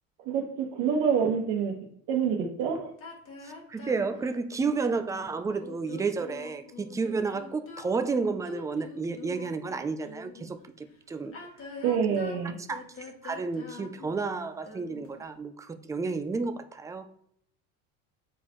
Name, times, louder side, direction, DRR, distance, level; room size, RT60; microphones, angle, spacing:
voice 1, 0.2-1.8 2.1-2.9 11.8-12.5, right 7 dB, 80° right, 2 dB, 1.3 m, -27 dB
sound 1, 3.0-10.5 11.2-15.2, left 4 dB, 40° left, 1.5 m, -45 dB
voice 2, 3.7-11.4 12.1-12.2 12.7-12.8 13.2-17.1, right 4 dB, 10° right, 9 dB, 0.4 m, -31 dB
8.1 x 4.3 x 3.1 m, 0.70 s
cardioid pair, 120°, 34 cm